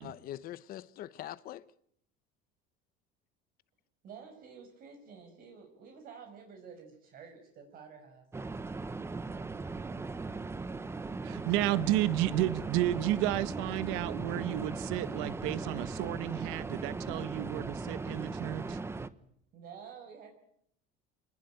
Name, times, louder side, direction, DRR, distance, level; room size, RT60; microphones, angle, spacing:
voice 1, 0.0-1.6, left 13 dB, 45° left, 1.0 m, -43 dB
voice 2, 4.0-8.3 19.5-20.3, right 6 dB, 45° right, 5.8 m, -50 dB
sound 1, 8.3-19.1, right 3 dB, 10° right, 1.1 m, -38 dB
voice 3, 11.2-18.8, right 14 dB, 80° right, 1.5 m, -32 dB
28.5 x 20.0 x 9.2 m
cardioid pair, 155°, 20 cm